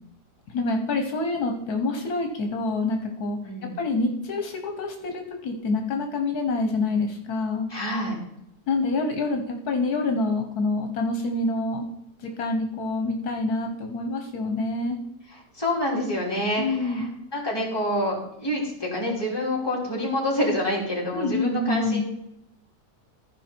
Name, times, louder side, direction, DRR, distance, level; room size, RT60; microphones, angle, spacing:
voice 1, 0.5-3.4 3.8-7.7 8.7-11.8 12.2-15.0 16.6-17.1 21.1-22.0, left 2 dB, 75° left, 4 dB, 1.5 m, -26 dB
voice 2, 7.7-8.2 15.5-22.0, left 1 dB, 15° left, -4 dB, 3.0 m, -27 dB
14.5 x 5.1 x 4.4 m, 0.83 s
omnidirectional pair, 1.6 m